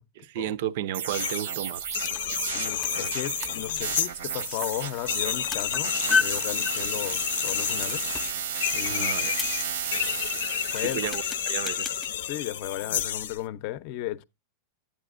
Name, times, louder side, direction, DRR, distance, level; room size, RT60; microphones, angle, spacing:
voice 1, 0.2-1.9 8.9-9.4 10.8-11.9, right 12 dB, 60° right, 0.5 m, -33 dB
sound 1, 0.9-12.3, right 8 dB, 90° right, 0.9 m, -34 dB
sound 2, 1.1-1.5 1.8-13.4, left 10 dB, 90° left, 0.6 m, -30 dB
sound 3, 1.6-12.1, left 4 dB, 10° left, 0.5 m, -36 dB
voice 2, 2.5-5.9 6.2-8.0 8.7-9.1 10.7-11.0 12.3-14.2, left 14 dB, 50° left, 0.6 m, -35 dB
11.5 x 8.5 x 2.4 m
supercardioid pair, 150°, 0 cm